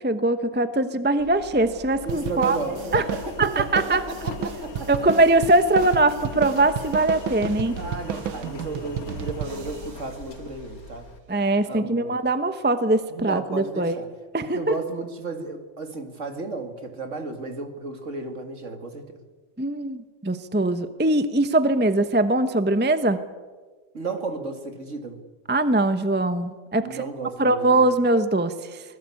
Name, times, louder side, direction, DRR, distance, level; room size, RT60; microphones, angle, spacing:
voice 1, 0.0-2.6 2.9-3.0 3.4-4.0 4.9-7.8 11.3-14.0 14.3-14.7 19.6-23.2 25.5-27.0 27.4-28.8, right 2 dB, 10° right, 11 dB, 0.4 m, -22 dB
Engine, 1.2-11.2, left 3 dB, 50° left, 2.2 m, -39 dB
voice 2, 2.0-4.9 7.8-11.1 11.6-12.1 13.1-14.1 14.4-19.2 23.9-25.2 26.8-27.9, right 3 dB, 40° right, 7 dB, 2.4 m, -33 dB
sound 1, 2.1-10.9, right 10 dB, 90° right, 1.7 m, -33 dB
25.5 x 20.5 x 8.5 m, 1.4 s
omnidirectional pair, 2.1 m